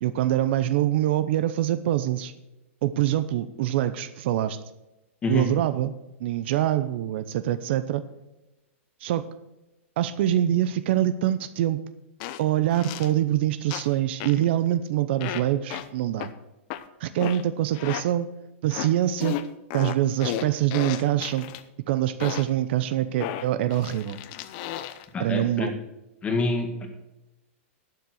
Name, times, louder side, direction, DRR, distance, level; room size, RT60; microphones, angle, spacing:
voice 1, 0.0-2.3 2.8-4.6 5.3-5.9 6.2-8.0 9.0-9.3 10.0-11.8 12.4-16.3 17.0-18.3 18.6-19.4 19.7-21.5 21.9-24.2 25.2-25.7, right 12 dB, 55° right, 12 dB, 0.7 m, -24 dB
sound 1, 12.2-12.4 12.7-13.1 13.7-13.9 14.2-14.4 15.2-15.4 15.7-15.9 16.2-16.3 16.7-16.8 17.2-17.4 17.7-18.0 18.7-18.9 19.2-21.6 22.2-22.5 23.2-25.1, left 12 dB, 40° left, 0.7 m, -33 dB
voice 2, 25.1-25.7 26.2-26.9, left 2 dB, 15° left, 4 dB, 1.9 m, -26 dB
11.5 x 7.2 x 6.4 m, 0.97 s
hypercardioid pair, 150°, 7 cm